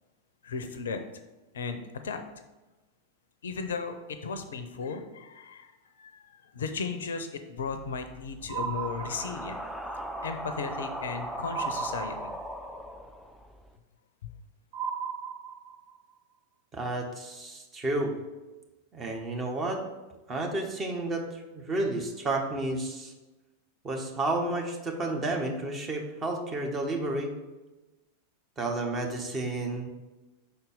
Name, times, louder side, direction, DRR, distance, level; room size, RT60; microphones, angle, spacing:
voice 1, 0.4-1.0 1.5-2.2 3.4-5.7 6.0-9.6 10.2-12.4 14.2-14.3, left 5 dB, 65° left, 8 dB, 0.6 m, -36 dB
sound 1, 7.6-13.7, equal, ahead, 0.5 m, -39 dB
sound 2, 8.5-9.7 11.5-12.7 14.7-16.0, right 7 dB, 50° right, 1.0 m, -35 dB
voice 2, 16.7-18.1 18.9-19.8 20.3-21.4 21.7-23.1 23.8-27.3 28.6-29.9, right 2 dB, 20° right, 1 dB, 1.1 m, -31 dB
5.7 x 4.3 x 5.2 m, 1.1 s
figure-of-eight pair, 90°, 0 cm